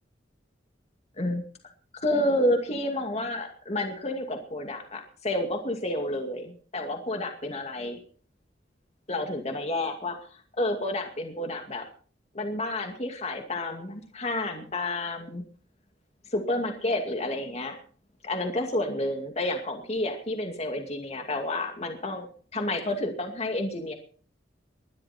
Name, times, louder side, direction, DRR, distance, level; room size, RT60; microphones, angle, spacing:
voice 1, 1.9-8.0 9.1-11.8 12.3-15.5 16.3-17.8 18.2-22.3 22.5-23.9, left 1 dB, 35° left, 4 dB, 2.4 m, -30 dB
21.5 x 12.0 x 4.4 m, 0.43 s
head